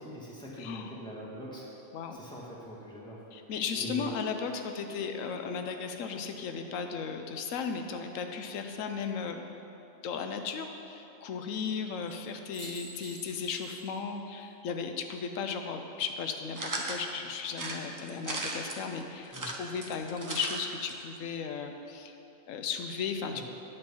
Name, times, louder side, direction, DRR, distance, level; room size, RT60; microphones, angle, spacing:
voice 1, 0.0-1.6 2.1-3.2 3.8-4.1 19.3-19.5 23.3-23.4, equal, 5° left, -6 dB, 1.5 m, -43 dB
voice 2, 0.6-0.9 1.9-2.2 3.3-9.4 10.0-22.1 22.5-23.4, left 6 dB, 90° left, 6 dB, 1.0 m, -35 dB
sound 1, 3.6-6.8 8.6-9.3 12.1-12.2 12.5-14.1 14.4-14.5 16.8-17.3, right 2 dB, 75° right, 1.7 m, -52 dB
sound 2, 16.5-17.0 17.5-18.8 19.2-20.6 20.9-21.0 21.2-21.3, right 2 dB, 20° right, 0.5 m, -36 dB
9.5 x 4.5 x 7.0 m, 2.9 s
omnidirectional pair, 1.3 m